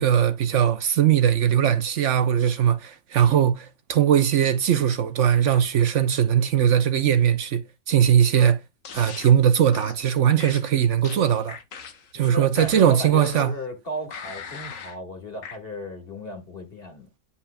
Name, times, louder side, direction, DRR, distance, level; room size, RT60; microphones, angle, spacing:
voice 1, 0.0-7.6 7.9-8.6 8.9-11.6 12.1-13.5, right 9 dB, 65° right, 1.0 m, -20 dB
sound 1, 8.8-9.4 9.7-10.0 10.4-12.1 12.6-13.6 14.1-15.0 15.4-15.6, left 6 dB, 75° left, 1.4 m, -40 dB
voice 2, 12.1-17.1, left 1 dB, 45° left, 1.9 m, -35 dB
9.6 x 5.5 x 2.2 m
omnidirectional pair, 1.4 m